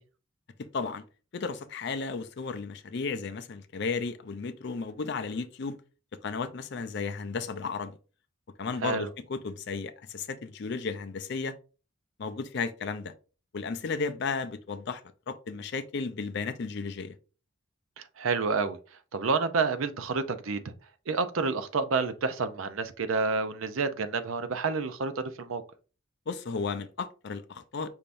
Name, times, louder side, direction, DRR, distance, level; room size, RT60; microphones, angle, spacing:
voice 1, 0.6-1.0 1.3-5.8 6.2-8.0 8.6-11.6 12.2-13.1 13.5-15.0 15.3-17.2 26.3-27.9, left 4 dB, 55° left, 0.4 m, -34 dB
voice 2, 18.0-18.8 19.1-20.6 21.1-25.1 25.4-25.6, right 4 dB, 70° right, 0.5 m, -29 dB
5.5 x 3.4 x 2.5 m
head